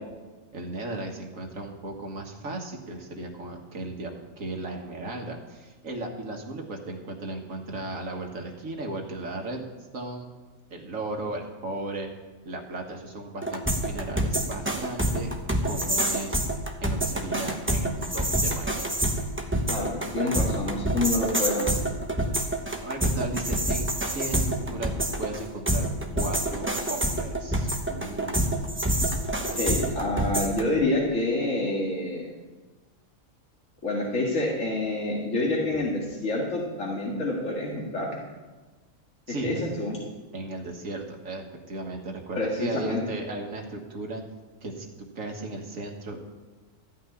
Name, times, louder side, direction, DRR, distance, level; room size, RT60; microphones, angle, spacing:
voice 1, 0.5-9.6 9.9-10.3 10.7-12.1 12.4-15.3 15.6-16.4 16.8-19.0 22.8-23.9 24.1-24.9 25.2-25.9 26.2-28.5 39.3-39.6 40.3-44.2 44.6-46.2, right 2 dB, 75° right, 2 dB, 1.9 m, -36 dB
sound 1, 13.4-30.6, right 1 dB, 10° right, 0.9 m, -27 dB
voice 2, 19.7-21.7 29.6-32.3 33.8-38.1 39.4-40.0 42.3-43.0, left 2 dB, 65° left, -3 dB, 2.3 m, -27 dB
14.0 x 5.9 x 9.7 m, 1.2 s
omnidirectional pair, 1.4 m